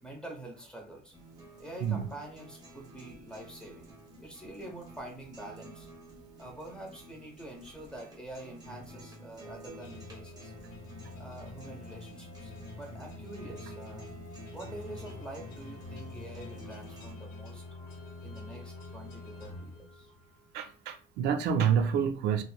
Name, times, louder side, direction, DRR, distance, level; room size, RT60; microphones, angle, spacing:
voice 1, 0.0-1.1 1.6-3.9 4.2-5.9 6.4-10.5 11.2-14.1 14.5-17.6 18.2-20.1, right 1 dB, 5° left, 0.9 m, -46 dB
sound 1, 1.1-17.1, equal, 20° right, 1.3 m, -50 dB
sound 2, 9.8-20.5, left 2 dB, 60° left, 1.0 m, -47 dB
voice 2, 20.5-22.4, right 7 dB, 85° right, 0.4 m, -28 dB
2.9 x 2.0 x 2.4 m
cardioid pair, 110°, 17 cm